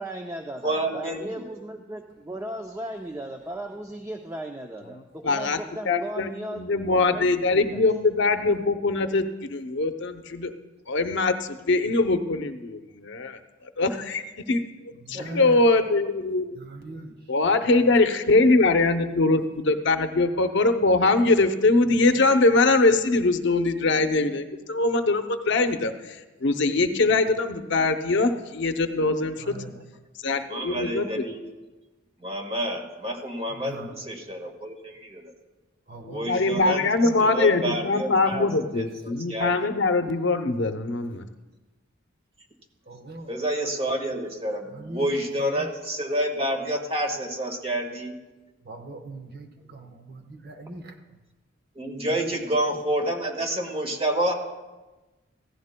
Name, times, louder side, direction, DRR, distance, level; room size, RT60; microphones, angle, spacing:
voice 1, 0.0-7.8, right 1 dB, 15° right, 3 dB, 0.5 m, -36 dB
voice 2, 0.6-1.3 15.1-15.3 30.5-31.6 32.2-35.3 36.1-36.8 37.2-38.5 38.7-39.8 43.3-48.2 51.7-54.3, right 1 dB, 30° right, 3 dB, 1.6 m, -29 dB
voice 3, 5.2-5.6 5.9-10.5 10.9-13.4 13.8-14.6 15.1-16.4 17.3-29.5 30.2-31.1 36.0-41.3, left 3 dB, 65° left, 8 dB, 0.7 m, -22 dB
voice 4, 15.0-15.7 16.5-17.2 17.5-17.9 29.4-29.8 33.5-33.9 35.9-37.3 42.9-43.3 43.6-43.7 44.7-45.1 45.4-45.7 48.6-50.9 52.1-52.3, right 2 dB, 55° right, 4 dB, 1.1 m, -40 dB
16.0 x 14.5 x 2.2 m, 1.2 s
head